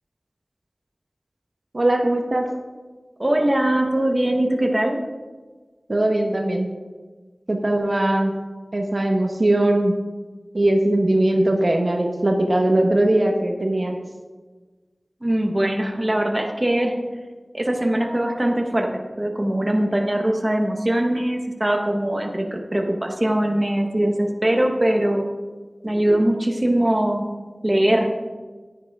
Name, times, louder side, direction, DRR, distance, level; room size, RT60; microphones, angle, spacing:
voice 1, 1.7-2.4 5.9-6.7 7.5-8.3 8.7-9.9 10.5-14.0, right 1 dB, 60° right, 2 dB, 1.2 m, -20 dB
voice 2, 3.2-5.0 15.2-17.0 17.5-25.3 25.8-27.3 27.6-28.1, right 1 dB, 30° right, 2 dB, 1.3 m, -21 dB
11.0 x 9.5 x 3.6 m, 1.3 s
wide cardioid pair, 45°, 0 cm